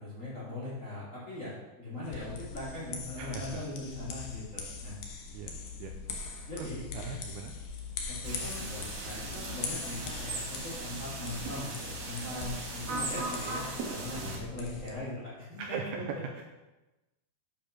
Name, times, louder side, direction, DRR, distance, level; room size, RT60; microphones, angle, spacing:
voice 1, 0.0-4.9 6.5-7.2 8.1-16.0, left 2 dB, 20° left, -7 dB, 2.4 m, -40 dB
sound 1, 2.0-14.9, left 5 dB, 90° left, 1.6 m, -42 dB
voice 2, 3.2-3.6 5.3-5.5 5.8-6.2 6.6-6.7 6.9-7.5 14.2-14.5 15.6-16.0 16.4-16.5, right 6 dB, 80° right, 3 dB, 2.4 m, -40 dB
sound 2, 8.2-14.4, right 3 dB, 65° right, 1.6 m, -38 dB
9.3 x 5.1 x 5.9 m, 1.1 s
omnidirectional pair, 5.0 m